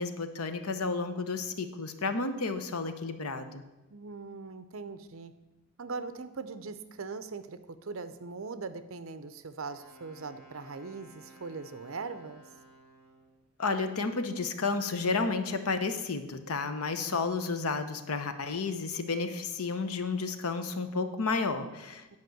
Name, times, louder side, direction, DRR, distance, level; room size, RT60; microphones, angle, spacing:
voice 1, 0.0-3.6 13.6-22.2, left 4 dB, 75° left, 9 dB, 0.9 m, -32 dB
voice 2, 3.9-5.3 5.8-12.4 22.1-22.2, right 4 dB, 60° right, 12 dB, 0.6 m, -40 dB
Wind instrument woodwind instrument, 9.6-13.4, right 1 dB, ahead, 3.9 m, -56 dB
9.6 x 5.2 x 7.7 m, 1.1 s
head